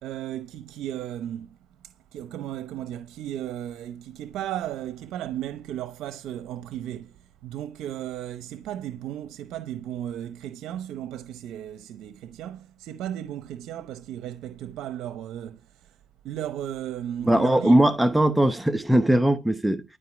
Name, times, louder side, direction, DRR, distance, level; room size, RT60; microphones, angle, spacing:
voice 1, 0.0-1.6 1.8-16.0 16.2-17.8, right 11 dB, 90° right, 0.8 m, -35 dB
voice 2, 17.2-19.8, right 1 dB, 5° right, 0.9 m, -20 dB
13.0 x 5.4 x 8.7 m
cardioid pair, 90°, 0 cm